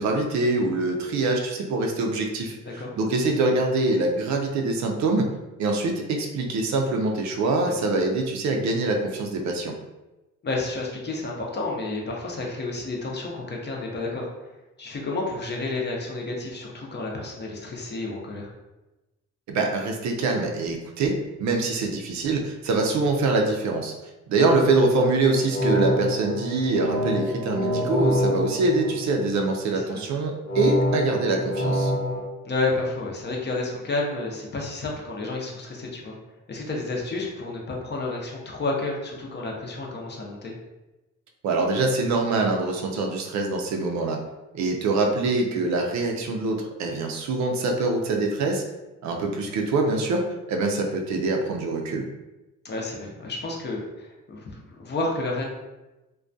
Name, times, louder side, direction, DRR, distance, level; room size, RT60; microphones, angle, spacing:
voice 1, 0.0-2.6 3.0-5.3 5.6-9.7 19.5-23.9 24.3-31.9 41.4-44.2 44.5-48.6 49.0-52.1, right 3 dB, 70° right, 2 dB, 0.5 m, -24 dB
voice 2, 2.6-2.9 7.6-7.7 10.4-14.5 14.8-18.5 29.7-30.0 32.4-36.2 36.5-40.5 45.1-45.2 52.6-55.4, left 2 dB, 35° left, -1 dB, 0.6 m, -31 dB
sound 1, 25.3-29.6 30.5-32.2, equal, 90° left, 0.8 m, -26 dB
2.2 x 2.2 x 2.5 m, 1.0 s
cardioid pair, 90°, 30 cm